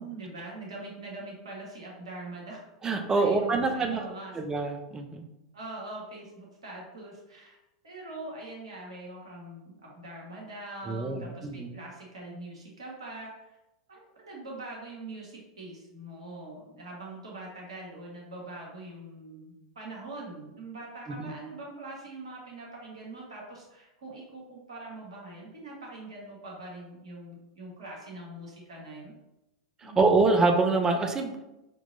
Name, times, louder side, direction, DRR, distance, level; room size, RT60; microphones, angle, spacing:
voice 1, 0.0-2.7 3.1-4.3 5.5-7.6 7.8-13.6 13.9-29.1 29.8-30.1, right 2 dB, 70° right, -3 dB, 1.4 m, -43 dB
voice 2, 2.8-4.0 4.3-5.3 10.9-11.7 21.1-21.3 29.8-31.4, right 3 dB, 20° right, 4 dB, 0.7 m, -25 dB
6.2 x 2.9 x 2.7 m, 0.94 s
figure-of-eight pair, 90°, 3 cm